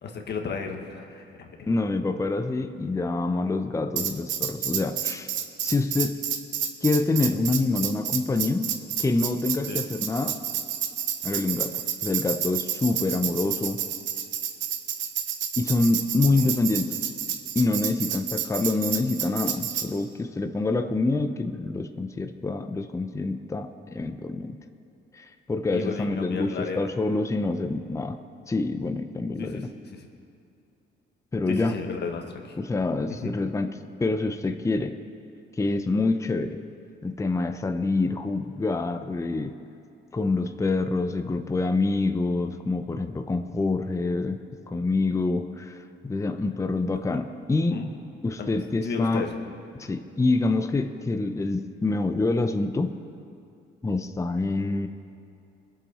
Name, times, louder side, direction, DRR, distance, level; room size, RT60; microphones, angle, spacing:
voice 1, 0.0-1.7 9.7-9.8 16.2-16.6 25.7-26.9 29.4-30.1 31.5-32.6 33.2-33.3 47.7-47.9 48.4-49.3, left 5 dB, 55° left, 3 dB, 1.4 m, -34 dB
voice 2, 1.7-5.3 5.6-6.2 6.8-10.4 11.2-13.8 15.6-17.0 17.5-24.6 25.1-28.2 28.5-29.6 31.3-31.7 32.6-35.0 35.6-36.6 37.0-39.5 40.1-47.8 48.2-49.3 49.7-52.9 53.8-54.9, left 3 dB, 15° left, 8 dB, 0.6 m, -26 dB
Tambourine, 4.0-19.9, right 9 dB, 75° right, 0.9 m, -30 dB
21.0 x 7.3 x 4.2 m, 2.6 s
cardioid pair, 90°, 20 cm